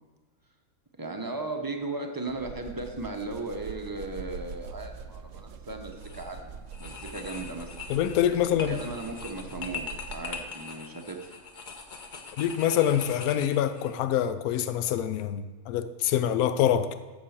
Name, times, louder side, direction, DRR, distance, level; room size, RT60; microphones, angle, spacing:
voice 1, 1.0-7.7 8.7-11.3, right 2 dB, 20° right, 0.6 m, -36 dB
sound 1, 2.3-10.6, right 5 dB, 65° right, 0.8 m, -44 dB
sound 2, 5.9-6.3 6.7-13.9, left 4 dB, 40° left, 0.9 m, -42 dB
voice 2, 7.9-8.8 12.4-17.0, left 10 dB, 85° left, 1.0 m, -25 dB
7.3 x 6.5 x 7.2 m
omnidirectional pair, 1.5 m